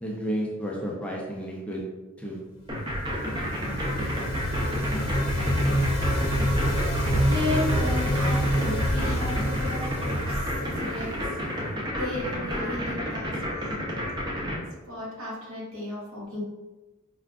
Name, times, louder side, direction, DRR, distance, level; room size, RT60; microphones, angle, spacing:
voice 1, 0.0-1.8 2.2-2.4, equal, 5° left, -3 dB, 0.4 m, -31 dB
sound 1, 2.7-14.6, equal, 20° right, 0.7 m, -30 dB
sound 2, 2.8-11.6, equal, 80° left, 0.9 m, -27 dB
voice 2, 7.3-11.1 11.6-11.7 12.0-13.7 14.9-16.4, left 2 dB, 75° right, -5 dB, 1.3 m, -33 dB
4.6 x 2.4 x 2.3 m, 1.1 s
head